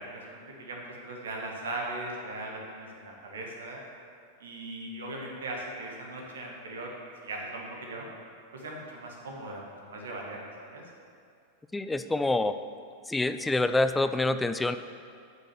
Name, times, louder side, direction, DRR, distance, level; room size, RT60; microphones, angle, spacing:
voice 1, 0.0-3.8 4.4-6.9 7.2-8.1 8.5-10.8, right 2 dB, 65° right, 0 dB, 1.7 m, -39 dB
voice 2, 11.7-12.6 13.1-14.8, left 2 dB, 10° left, 10 dB, 0.4 m, -26 dB
8.4 x 6.5 x 7.1 m, 2.3 s
figure-of-eight pair, 90°, 0 cm